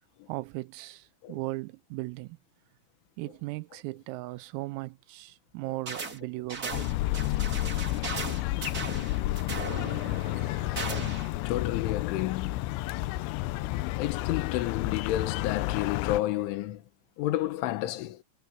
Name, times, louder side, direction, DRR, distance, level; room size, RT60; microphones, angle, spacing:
voice 1, 0.3-2.4 3.2-6.9, right 20 dB, 85° right, 3.4 m, -37 dB
sound 1, 5.9-6.2 6.5-11.3, right 4 dB, 50° right, 1.1 m, -37 dB
sound 2, 6.7-16.2, left 17 dB, 90° left, 2.5 m, -31 dB
voice 2, 11.5-13.1 14.0-16.8 17.2-18.2, left 15 dB, 75° left, 3.7 m, -31 dB
omnidirectional pair, 6.0 m